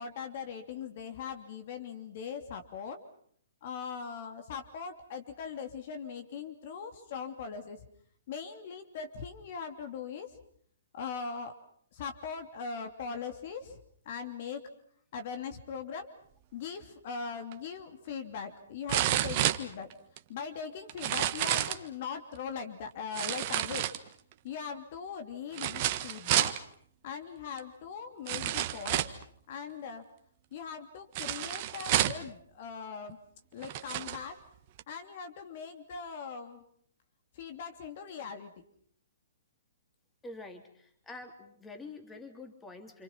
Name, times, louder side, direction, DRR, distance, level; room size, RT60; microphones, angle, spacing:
voice 1, 0.0-3.0 3.6-7.8 8.3-10.3 10.9-11.5 11.9-13.8 14.0-14.6 15.1-16.1 16.5-19.9 20.3-23.8 24.4-26.5 27.0-29.2 29.5-30.0 30.5-33.2 33.5-34.4 34.9-36.6 37.3-38.5, left 6 dB, 50° left, 7 dB, 2.9 m, -40 dB
sound 1, 17.5-17.6 18.9-20.2 20.9-21.9 23.1-24.3 25.5-26.6 27.6-27.7 28.3-29.2 31.2-32.3 33.1-33.2 33.6-34.2 34.8-34.9, right 13 dB, 40° right, 1.5 m, -30 dB
voice 2, 40.2-43.0, left 3 dB, 10° left, 4 dB, 3.4 m, -46 dB
28.5 x 27.5 x 5.9 m, 0.62 s
hypercardioid pair, 125°, 0 cm